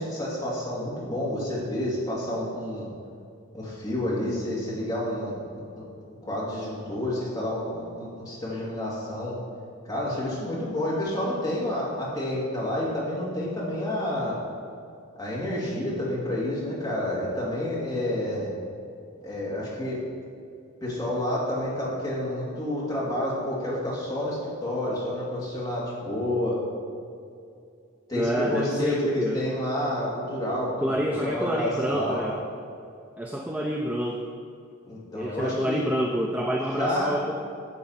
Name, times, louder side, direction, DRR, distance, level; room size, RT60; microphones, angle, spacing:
voice 1, 0.0-2.9 3.5-5.8 6.2-9.4 9.9-14.4 15.2-18.5 19.2-20.0 20.8-26.6 28.1-32.3 34.9-35.8 36.8-37.2, left 1 dB, 15° left, -7 dB, 2.5 m, -29 dB
voice 2, 28.1-29.4 30.8-32.4 33.2-34.3 35.1-37.3, equal, 5° right, 0 dB, 0.4 m, -27 dB
11.0 x 6.9 x 4.3 m, 2.4 s
head